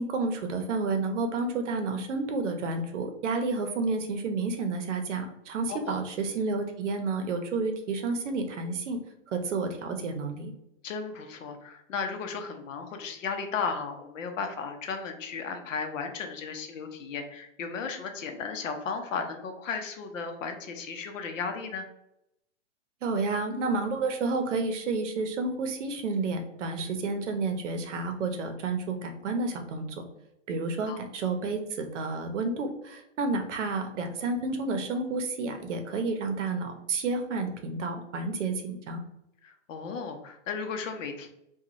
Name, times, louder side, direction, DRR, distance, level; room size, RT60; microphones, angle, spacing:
voice 1, 0.0-9.0 9.3-10.5 23.0-29.9 30.5-39.0, right 3 dB, 70° right, 6 dB, 0.7 m, -30 dB
voice 2, 10.8-21.9 30.9-31.0 39.4-41.3, left 5 dB, 80° left, 5 dB, 0.7 m, -35 dB
2.5 x 2.3 x 2.9 m, 0.82 s
hypercardioid pair, 165°, 38 cm